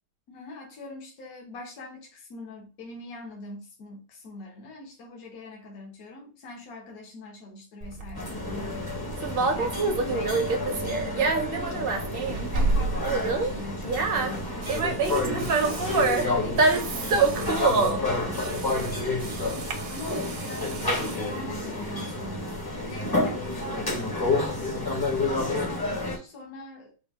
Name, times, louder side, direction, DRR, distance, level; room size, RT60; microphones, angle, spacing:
voice 1, 0.3-9.2 9.5-12.1 12.5-14.7 15.4-16.0 16.4-18.9 19.9-24.6 25.0-26.9, left 2 dB, 70° left, 1.4 m, -42 dB
Conversation, 7.8-19.7, right 3 dB, 55° right, 0.6 m, -26 dB
sound 1, 8.1-26.2, left 2 dB, 25° left, 0.5 m, -30 dB
sound 2, 13.0-13.2 14.6-18.0 18.3-21.3 22.2-22.3, right 6 dB, 75° right, 1.2 m, -43 dB
4.4 x 2.2 x 3.4 m
omnidirectional pair, 1.6 m